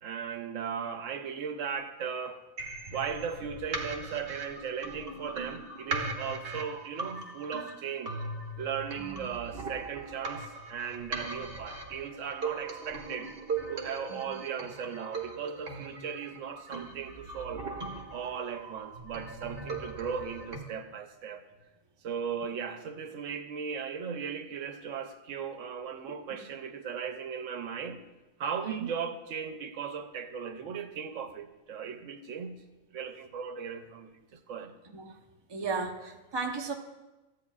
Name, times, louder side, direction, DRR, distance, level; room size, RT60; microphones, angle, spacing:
voice 1, 0.0-2.4 2.9-8.2 8.6-13.3 13.7-17.6 18.1-21.4 22.0-28.0 28.4-32.6 32.9-34.7, right 7 dB, 80° right, 8 dB, 1.0 m, -37 dB
sound 1, 2.6-20.6, right 3 dB, 50° right, 1.2 m, -39 dB
voice 2, 9.0-9.3 14.1-14.3 28.6-28.9 34.8-35.2 35.5-36.7, right 4 dB, 25° right, 2 dB, 0.7 m, -35 dB
13.5 x 9.9 x 2.4 m, 1.1 s
omnidirectional pair, 1.3 m